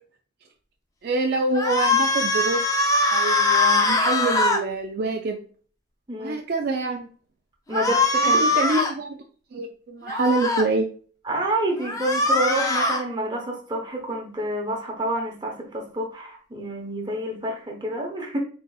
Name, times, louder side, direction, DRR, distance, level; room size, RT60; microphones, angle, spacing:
voice 1, 1.0-2.6 3.1-5.4 6.2-7.1 8.2-9.2 9.5-10.9, right 3 dB, 50° right, 2 dB, 0.3 m, -26 dB
sound 1, 1.5-4.6 7.7-8.9 10.1-10.6 11.8-13.0, left 2 dB, 15° left, 0.4 m, -21 dB
voice 2, 7.7-8.4 11.3-18.4, right 1 dB, 20° right, 0 dB, 0.9 m, -28 dB
4.0 x 3.9 x 2.3 m, 0.42 s
head